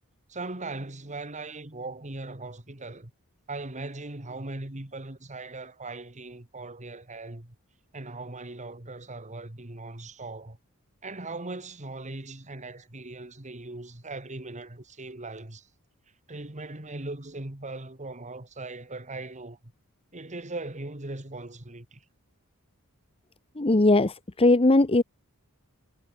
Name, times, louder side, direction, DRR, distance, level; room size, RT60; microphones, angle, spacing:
voice 1, 0.3-3.1 3.5-7.6 7.9-10.6 11.0-15.7 16.3-19.7 20.1-22.0, right 2 dB, 35° right, 2.3 m, -39 dB
voice 2, 23.6-25.0, left 2 dB, 25° left, 1.0 m, -20 dB
head